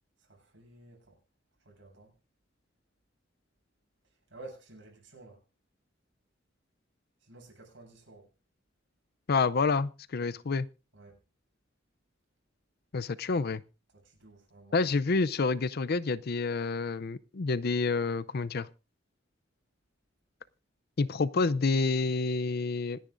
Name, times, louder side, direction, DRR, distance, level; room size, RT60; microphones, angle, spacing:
voice 1, 0.2-1.2 1.6-2.1 4.3-5.4 7.2-8.3 10.9-11.2 13.9-14.8, right 2 dB, 70° right, 7.8 m, -52 dB
voice 2, 9.3-10.7 12.9-13.6 14.7-18.7 21.0-23.0, left 4 dB, 55° left, 0.5 m, -28 dB
26.5 x 10.0 x 2.6 m
head